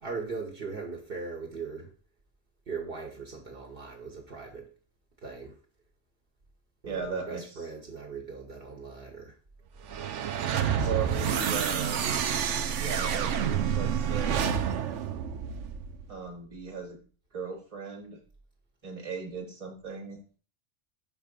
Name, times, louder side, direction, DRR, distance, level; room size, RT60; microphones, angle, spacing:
voice 1, 0.0-1.9 2.7-4.7 5.2-5.6 6.8-9.4 10.8-11.4, right 4 dB, 55° right, 0 dB, 1.2 m, -39 dB
voice 2, 6.9-7.4 10.8-12.1 12.8-14.5 16.1-17.0 17.3-18.2 18.8-20.2, right 5 dB, 30° right, 3 dB, 1.3 m, -37 dB
sound 1, 9.8-16.1, right 8 dB, 90° right, 1.0 m, -29 dB
5.7 x 3.5 x 5.2 m, 0.39 s
omnidirectional pair, 1.2 m